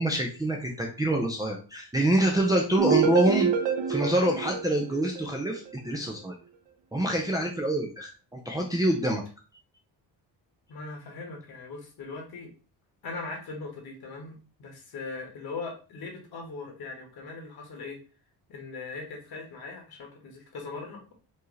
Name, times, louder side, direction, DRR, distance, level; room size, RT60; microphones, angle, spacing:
voice 1, 0.0-3.5 3.9-6.4 6.9-9.2, right 1 dB, 10° right, -1 dB, 0.4 m, -26 dB
sound 1, 2.8-5.7, right 6 dB, 85° right, 0.8 m, -27 dB
voice 2, 10.7-12.5 13.0-18.0 18.5-21.1, left 3 dB, 60° left, 1 dB, 1.5 m, -40 dB
4.6 x 2.8 x 3.1 m, 0.34 s
cardioid pair, 165°, 42 cm